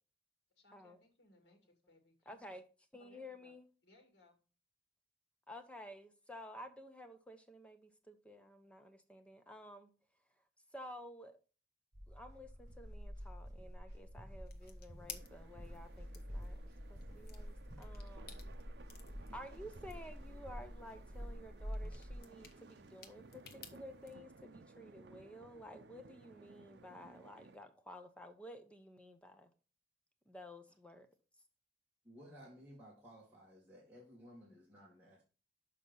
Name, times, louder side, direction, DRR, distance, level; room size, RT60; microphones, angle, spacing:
voice 1, 0.5-2.6 3.0-3.5 3.8-4.4, left 1 dB, 75° left, 2.0 m, -67 dB
voice 2, 2.3-2.6 2.9-3.7 5.5-9.9 10.7-11.4 12.1-16.6 16.9-18.4 19.3-29.5 30.3-31.1, left 1 dB, 5° left, 0.7 m, -53 dB
sound 1, 11.9-22.2, equal, 45° right, 4.5 m, -48 dB
sound 2, 14.5-24.1, left 7 dB, 55° left, 1.1 m, -58 dB
sound 3, 15.1-27.6, right 3 dB, 75° right, 0.6 m, -59 dB
voice 3, 32.0-35.2, equal, 10° right, 2.1 m, -57 dB
6.5 x 5.3 x 5.4 m
head